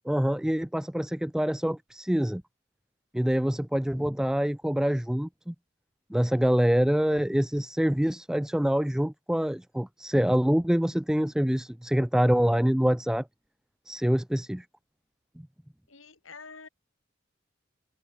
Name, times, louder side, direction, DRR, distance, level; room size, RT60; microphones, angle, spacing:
voice 1, 0.1-2.4 3.1-5.5 6.1-13.3 13.9-14.7, equal, 5° right, 0.3 m, -25 dB
voice 2, 15.9-16.7, left 4 dB, 80° left, 4.1 m, -47 dB
head